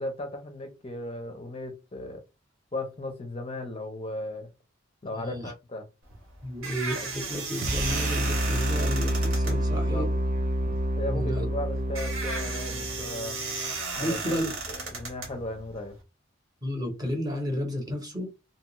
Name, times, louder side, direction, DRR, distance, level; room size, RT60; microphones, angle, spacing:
voice 1, 0.0-2.2 2.7-4.5 5.0-5.9 9.7-10.1 11.0-13.4 14.0-14.5 14.9-16.0, left 1 dB, 30° left, 0.5 m, -36 dB
voice 2, 5.1-5.5 6.4-10.1 11.1-11.4 14.0-14.5 16.6-18.3, equal, 20° right, 0.8 m, -32 dB
sound 1, 6.0-16.0, right 3 dB, 85° right, 1.0 m, -35 dB
sound 2, 7.6-13.8, right 1 dB, 40° right, 0.4 m, -28 dB
2.7 x 2.3 x 2.9 m
head